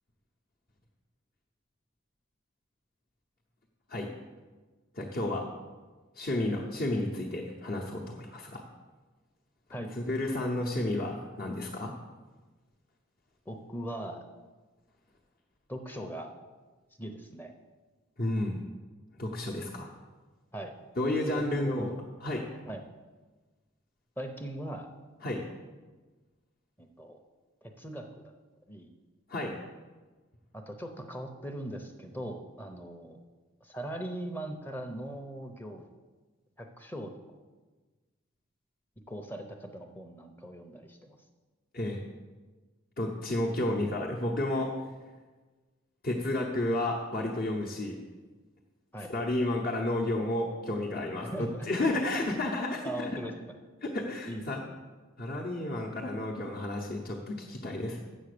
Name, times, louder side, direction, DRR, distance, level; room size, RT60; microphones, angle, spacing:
voice 1, 4.9-5.5 6.1-8.6 9.9-11.9 18.2-18.6 19.2-19.9 21.0-21.9 22.2-22.5 25.2-25.5 29.3-29.6 41.7-42.0 43.0-44.8 46.0-48.0 49.0-53.2 53.8-54.6 55.2-58.0, left 1 dB, 45° left, -3 dB, 0.9 m, -31 dB
voice 2, 13.5-14.2 15.7-16.3 17.0-17.5 20.5-20.7 21.3-21.9 22.7-22.8 24.2-24.9 26.8-27.2 27.6-28.3 28.7-28.9 30.5-33.2 33.6-35.9 36.6-37.2 39.1-41.2 48.9-49.1 51.3-51.7 52.8-53.3 54.3-54.4, right 1 dB, 10° left, 5 dB, 0.7 m, -40 dB
7.7 x 7.1 x 6.7 m, 1.3 s
head